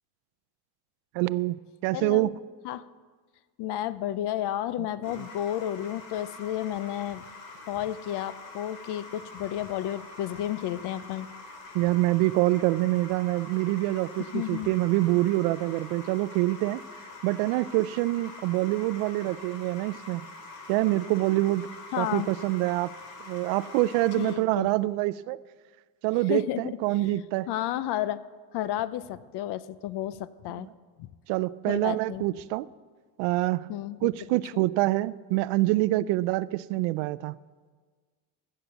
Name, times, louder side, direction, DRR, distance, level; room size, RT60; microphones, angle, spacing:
voice 1, 1.1-1.6 1.8-2.4 5.2-5.3 11.7-16.8 17.2-20.2 20.7-21.7 22.0-22.9 23.3-25.4 26.0-27.5 30.5-30.7 31.3-32.7 33.2-33.7 34.0-37.3, right 18 dB, 70° right, 19 dB, 0.5 m, -26 dB
voice 2, 1.9-2.3 2.6-2.9 3.6-7.2 7.7-11.3 14.3-14.7 21.9-22.3 24.2-24.7 26.3-26.6 27.0-27.1 27.5-28.2 28.5-30.7 31.0-31.1 31.7-32.2 33.7-34.1 34.5-34.6 36.0-36.1, left 12 dB, 55° left, 17 dB, 0.7 m, -32 dB
sound 1, 5.0-24.4, left 3 dB, 90° left, 2.8 m, -45 dB
15.5 x 6.7 x 7.0 m, 1.5 s
supercardioid pair, 105°, 48 cm